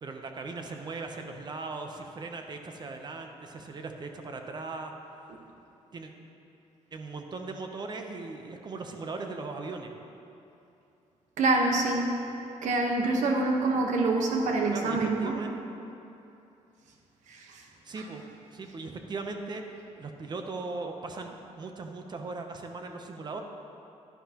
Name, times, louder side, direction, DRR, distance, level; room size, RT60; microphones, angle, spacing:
voice 1, 0.0-4.9 5.9-6.1 6.9-9.9 14.7-15.5 17.8-18.2 18.5-19.6 20.0-23.4, right 3 dB, 35° right, 4 dB, 0.8 m, -38 dB
voice 2, 11.4-12.2 12.6-15.3 17.3-17.6 18.0-18.1, right 2 dB, 80° right, 1 dB, 1.2 m, -26 dB
11.5 x 11.0 x 3.0 m, 2.8 s
cardioid pair, 135°, 12 cm